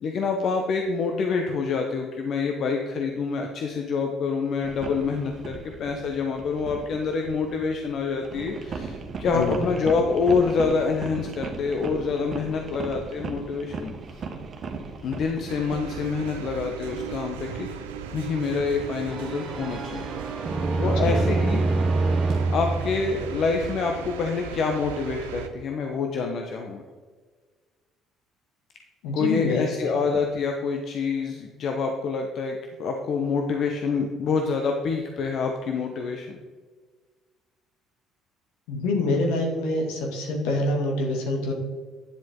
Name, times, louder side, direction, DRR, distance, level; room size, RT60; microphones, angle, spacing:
voice 1, 0.0-14.2 15.0-17.7 18.1-20.1 20.8-21.6 22.5-26.8 29.1-36.4, left 4 dB, 55° left, 3 dB, 1.0 m, -27 dB
sound 1, 4.6-7.7 8.1-16.6, right 4 dB, 45° right, 1.4 m, -37 dB
sound 2, 15.5-25.5, right 7 dB, 85° right, 0.8 m, -37 dB
sound 3, 19.1-23.8, right 3 dB, 30° right, 0.9 m, -26 dB
voice 2, 20.8-21.2 29.0-29.7 38.7-41.5, left 2 dB, 75° left, 0 dB, 2.2 m, -26 dB
10.0 x 7.5 x 3.8 m, 1.5 s
hypercardioid pair, 60°, 0 cm